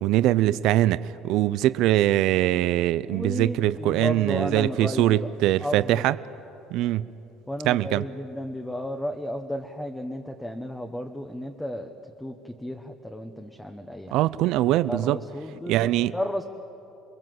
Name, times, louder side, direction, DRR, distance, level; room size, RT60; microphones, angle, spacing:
voice 1, 0.0-6.2 6.7-7.0 7.6-8.0 14.1-15.2 15.7-16.1, right 14 dB, 65° right, 15 dB, 0.5 m, -22 dB
voice 2, 3.0-5.3 5.6-6.1 7.5-11.9 12.2-14.1 14.6-16.4, equal, 5° left, 4 dB, 1.1 m, -33 dB
28.0 x 23.0 x 7.8 m, 2.8 s
cardioid pair, 155°, 0 cm